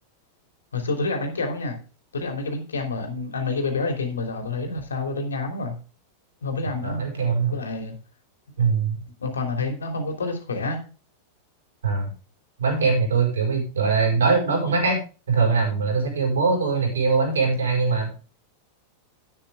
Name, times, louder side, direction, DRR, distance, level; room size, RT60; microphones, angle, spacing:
voice 1, 0.7-1.7 2.1-5.7 6.4-7.0 7.5-7.9 9.2-10.8, left 3 dB, 70° left, 4 dB, 3.2 m, -28 dB
voice 2, 6.8-7.5 8.6-9.0 11.8-12.1 12.6-15.0 15.3-18.1, right 4 dB, 65° right, 2 dB, 5.5 m, -22 dB
11.5 x 9.8 x 3.6 m, 0.34 s
figure-of-eight pair, 90°, 0 cm